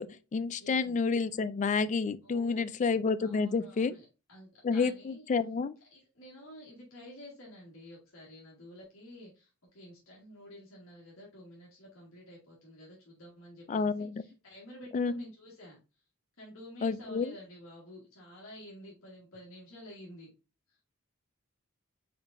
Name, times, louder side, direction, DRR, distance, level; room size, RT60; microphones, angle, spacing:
voice 1, 0.0-3.9 4.6-5.8 13.7-14.3 14.9-15.2 16.8-17.4, left 4 dB, 35° left, 0.3 m, -30 dB
voice 2, 0.6-1.0 2.2-2.8 3.2-5.2 5.9-15.8 16.4-20.3 20.7-20.9, left 1 dB, 70° left, 1.6 m, -51 dB
4.5 x 3.9 x 2.5 m
head